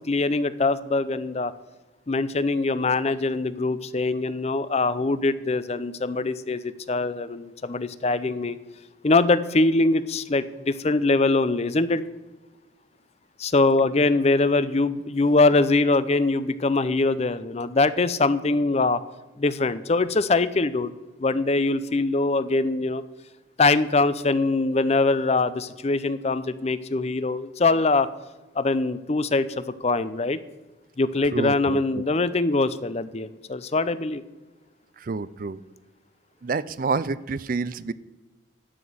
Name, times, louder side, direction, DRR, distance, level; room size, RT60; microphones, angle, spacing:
voice 1, 0.1-1.5 2.1-8.6 9.0-12.0 13.4-19.0 19.4-20.9 21.2-23.0 23.6-28.1 28.6-30.4 31.0-34.2, left 3 dB, 35° left, 15 dB, 0.5 m, -23 dB
voice 2, 31.3-31.8 35.0-35.6 36.4-37.9, right 4 dB, 45° right, 18 dB, 0.4 m, -28 dB
13.0 x 6.0 x 7.7 m, 1.2 s
head